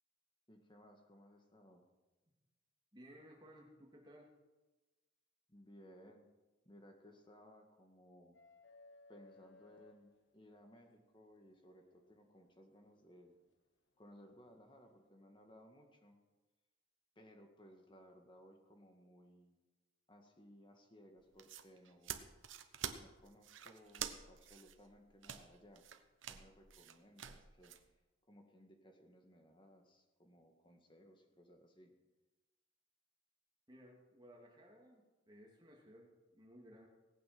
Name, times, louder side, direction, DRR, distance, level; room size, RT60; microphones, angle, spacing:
voice 1, 0.5-1.9 5.5-6.3 6.7-8.4 9.1-13.3 14.0-16.2 17.2-19.6 20.1-22.2 23.0-25.8 26.3-27.8 28.3-31.9, equal, 25° left, 3 dB, 1.9 m, -61 dB
voice 2, 2.9-4.3 33.7-36.9, equal, 20° right, -1 dB, 2.7 m, -59 dB
sound 1, 8.3-10.7 12.4-12.5 14.3-14.5, left 2 dB, 65° left, 1.0 m, -62 dB
sound 2, 21.2-27.8, right 9 dB, 80° right, 1.0 m, -48 dB
19.0 x 8.6 x 6.1 m, 1.2 s
head